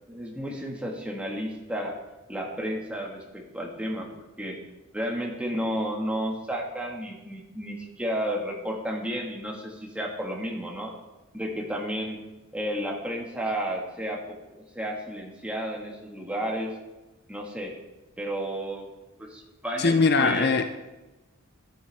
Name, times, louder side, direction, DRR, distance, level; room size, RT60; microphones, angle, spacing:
voice 1, 0.1-1.9 2.3-4.1 4.4-4.6 4.9-10.9 11.3-12.2 12.5-14.4 14.7-16.7 17.3-17.7 18.2-18.9 19.2-19.9 20.2-20.6, equal, 5° right, -1 dB, 1.7 m, -32 dB
voice 2, 19.8-20.6, left 4 dB, 50° left, 8 dB, 0.6 m, -21 dB
13.0 x 11.5 x 3.5 m, 1.1 s
head